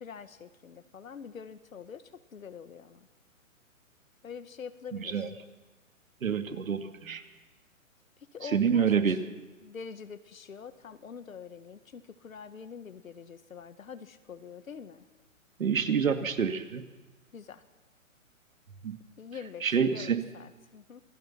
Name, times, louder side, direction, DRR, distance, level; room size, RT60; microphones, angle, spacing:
voice 1, 0.0-3.1 4.2-5.3 8.3-8.9 9.6-15.0 17.3-17.6 19.2-21.0, left 6 dB, 75° left, 11 dB, 1.9 m, -45 dB
voice 2, 4.9-5.3 6.2-7.2 8.4-9.2 15.6-16.8 18.8-19.0 19.6-20.2, right 7 dB, 70° right, 8 dB, 2.5 m, -27 dB
27.5 x 20.0 x 5.9 m, 1.2 s
hypercardioid pair, 135°, 41 cm